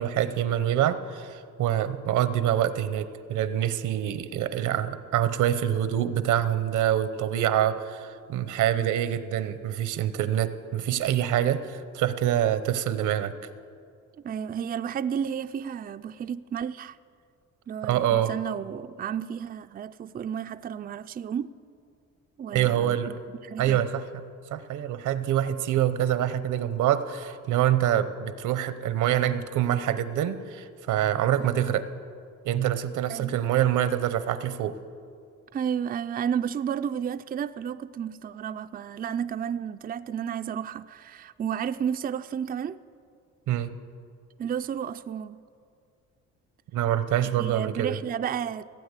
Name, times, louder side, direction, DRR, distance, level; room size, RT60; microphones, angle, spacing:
voice 1, 0.0-13.3 17.8-18.3 22.5-23.1 23.6-24.0 24.5-31.9 32.4-34.7 43.5-43.7 46.7-47.9, right 11 dB, 80° right, 0.8 m, -25 dB
voice 2, 14.2-17.0 17.7-21.5 22.4-23.8 31.4-31.5 33.1-33.4 35.5-42.8 44.4-45.4 47.4-48.6, right 8 dB, 30° right, 0.4 m, -32 dB
16.5 x 8.7 x 8.2 m
cardioid pair, 90°, 30 cm